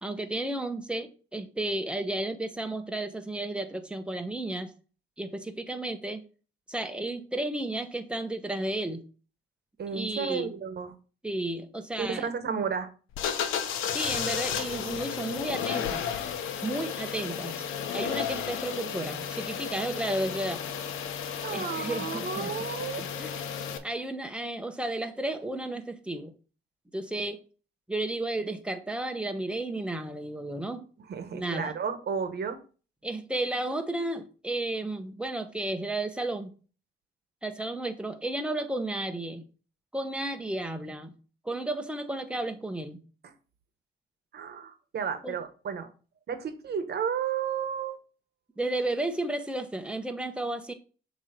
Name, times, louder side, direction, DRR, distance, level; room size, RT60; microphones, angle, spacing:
voice 1, 0.0-4.7 5.2-6.2 6.7-9.0 9.9-10.5 11.2-12.3 13.9-16.0 16.6-17.6 17.9-20.6 21.5-22.5 22.9-23.4 23.8-26.3 26.9-27.4 27.9-30.9 31.3-31.7 33.0-36.5 37.4-39.5 39.9-41.1 41.4-43.0 45.2-45.4 48.6-50.7, right 1 dB, 5° right, 6 dB, 1.0 m, -33 dB
voice 2, 9.8-10.9 12.0-12.9 21.4-23.0 31.1-32.6 43.2-43.3 44.3-45.9 46.3-48.0, right 7 dB, 55° right, 9 dB, 1.2 m, -32 dB
sound 1, 13.1-23.8, left 8 dB, 85° left, 0.8 m, -33 dB
7.2 x 3.0 x 5.1 m, 0.37 s
cardioid pair, 90°, 20 cm